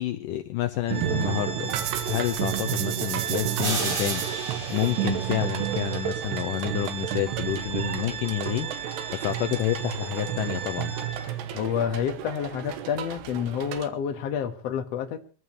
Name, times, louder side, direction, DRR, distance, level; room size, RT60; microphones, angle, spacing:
voice 1, 0.0-1.7 2.1-4.3 4.7-8.7 9.1-10.9, left 13 dB, 85° left, 1.9 m, -29 dB
Organ, 0.9-11.5, right 6 dB, 10° right, 6.9 m, -37 dB
sound 1, 0.9-13.9, right 11 dB, 85° right, 3.1 m, -31 dB
sound 2, 3.6-6.3, right 3 dB, 65° right, 7.6 m, -34 dB
voice 2, 11.5-15.2, left 8 dB, 65° left, 1.6 m, -29 dB
23.5 x 14.0 x 3.0 m
omnidirectional pair, 4.9 m